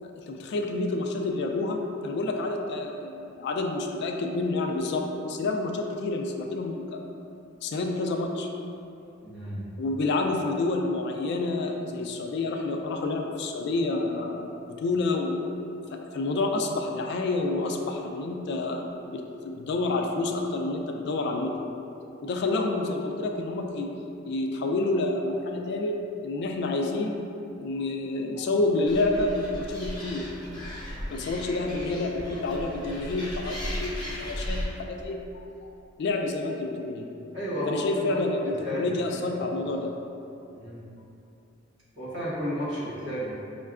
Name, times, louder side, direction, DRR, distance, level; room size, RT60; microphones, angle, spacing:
voice 1, 0.0-7.0 7.6-8.5 9.8-14.5 14.8-15.5 15.9-21.5 22.2-23.9 24.2-27.2 27.6-30.3 31.1-35.2 36.0-37.1 37.7-39.9, left 2 dB, 60° left, 3 dB, 0.3 m, -29 dB
voice 2, 9.2-9.6 37.3-38.9 39.3-39.4 40.5-40.8 41.9-43.3, equal, 60° right, -10 dB, 1.3 m, -32 dB
Animal, 28.9-34.7, equal, 20° left, 0.7 m, -36 dB
5.4 x 2.2 x 2.4 m, 2.7 s
head